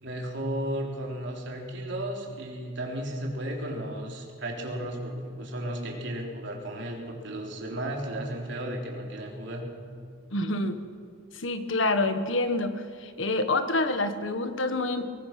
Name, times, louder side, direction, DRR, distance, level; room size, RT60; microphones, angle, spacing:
voice 1, 0.0-9.7, right 1 dB, 60° right, 0 dB, 3.6 m, -34 dB
voice 2, 10.3-10.8 11.3-15.1, left 2 dB, 65° left, 9 dB, 1.5 m, -27 dB
22.5 x 19.5 x 6.0 m, 2.3 s
head